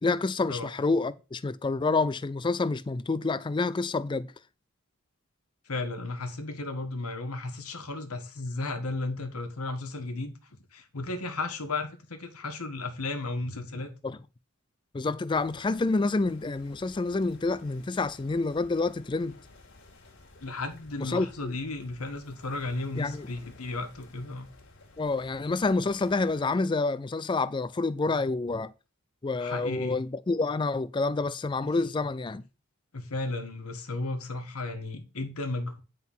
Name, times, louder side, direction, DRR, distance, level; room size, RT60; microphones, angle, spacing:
voice 1, 0.0-4.3 14.0-14.2 14.9-19.4 21.0-21.6 23.0-23.3 25.0-28.7 29.2-32.4, left 3 dB, 20° left, 0.3 m, -28 dB
voice 2, 5.6-10.3 10.7-13.9 20.4-24.5 29.4-30.0 32.9-35.8, left 2 dB, 90° left, 1.5 m, -34 dB
sound 1, 15.3-26.4, left 2 dB, 55° left, 2.0 m, -54 dB
9.3 x 4.0 x 5.5 m
head